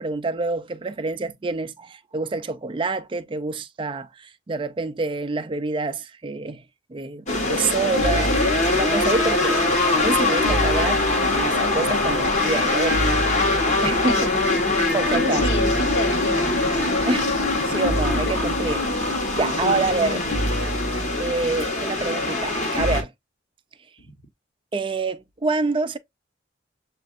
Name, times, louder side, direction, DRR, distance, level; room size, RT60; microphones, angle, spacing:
voice 1, 0.0-6.6 6.9-11.0 11.3-13.2 13.8-14.2 14.9-15.5 17.0-17.3 17.6-20.2 21.2-23.1 24.7-26.0, right 3 dB, 25° right, 0.4 m, -27 dB
sound 1, 7.3-23.0, left 2 dB, 40° left, 1.1 m, -22 dB
voice 2, 13.9-14.6 15.1-17.1 18.1-18.2 19.6-20.5 24.1-24.2, left 1 dB, 65° left, 1.2 m, -30 dB
7.4 x 2.5 x 2.5 m
head